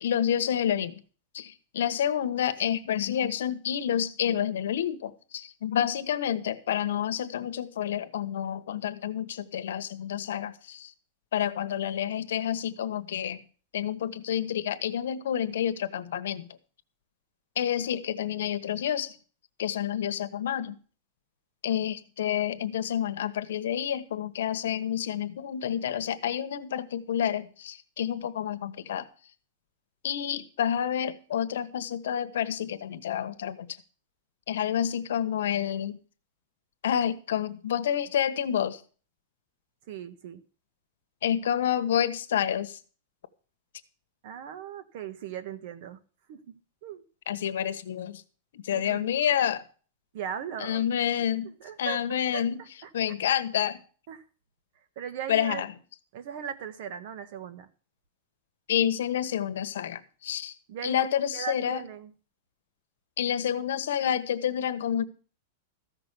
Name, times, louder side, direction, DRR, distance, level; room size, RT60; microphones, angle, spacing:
voice 1, 0.0-1.0 1.3-10.9 11.3-13.4 13.7-16.5 17.6-19.1 19.6-20.8 21.6-29.1 30.0-33.7 34.5-36.0 36.8-38.8 41.2-42.8 47.3-48.2 48.5-49.6 50.6-51.5 51.8-52.6 52.9-53.8 55.3-55.7 58.7-60.5 60.8-61.8 63.2-65.0, left 9 dB, 80° left, 11 dB, 1.1 m, -29 dB
voice 2, 39.9-40.4 44.2-46.0 46.3-46.4 46.8-47.0 48.7-49.2 50.1-50.9 51.6-52.4 52.8-52.9 54.1-54.2 55.0-55.6 56.1-57.7 60.7-60.9 61.3-62.1, right 8 dB, 45° right, 13 dB, 1.2 m, -38 dB
14.5 x 6.0 x 6.7 m, 0.40 s
supercardioid pair, 170°, 0 cm